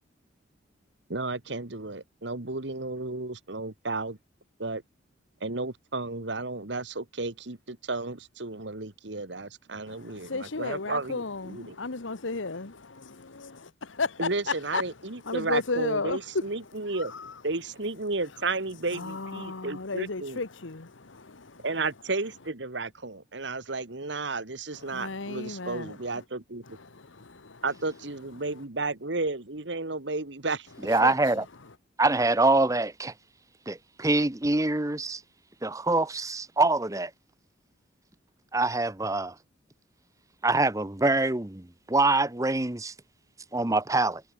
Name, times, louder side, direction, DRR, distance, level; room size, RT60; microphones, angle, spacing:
voice 1, 1.1-4.2 4.6-4.8 5.4-11.8 14.2-17.1 17.4-20.4 21.6-26.8 27.6-30.7, right 3 dB, 65° right, 1.9 m, -33 dB
voice 2, 9.9-14.8 15.2-16.2 16.9-17.3 18.9-21.7 24.7-26.2 26.7-27.6 31.0-31.1, left 3 dB, 85° left, 1.3 m, -34 dB
voice 3, 30.8-31.4 32.0-33.1 33.7-35.2 35.6-37.1 38.5-39.4 40.4-42.9 43.5-44.2, right 2 dB, 15° right, 0.9 m, -25 dB
head